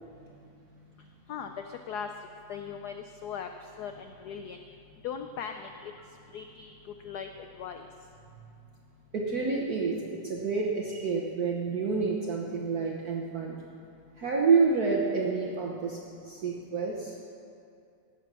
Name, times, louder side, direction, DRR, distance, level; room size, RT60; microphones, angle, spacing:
voice 1, 1.3-2.1 2.5-2.9 3.2-3.5 3.8-4.6 5.0-5.9 6.3-6.7 7.0-7.9, left 7 dB, 80° left, 6 dB, 0.9 m, -38 dB
voice 2, 9.1-13.6 14.2-16.0 16.2-17.1, right 4 dB, 55° right, -2 dB, 1.3 m, -28 dB
17.5 x 6.9 x 6.1 m, 2.5 s
omnidirectional pair, 2.3 m